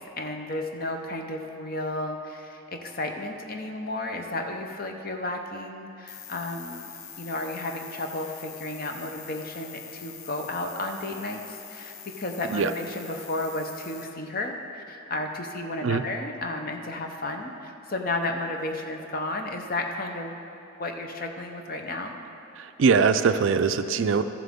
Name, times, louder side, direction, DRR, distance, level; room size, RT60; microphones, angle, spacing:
voice 1, 0.0-6.9 7.2-20.5 20.8-22.1, left 2 dB, 40° left, 4 dB, 0.7 m, -33 dB
sound 1, 6.1-14.0, left 9 dB, 80° left, 0.6 m, -44 dB
voice 2, 22.6-24.2, right 5 dB, 60° right, 10 dB, 0.4 m, -22 dB
14.0 x 7.6 x 3.6 m, 2.9 s
head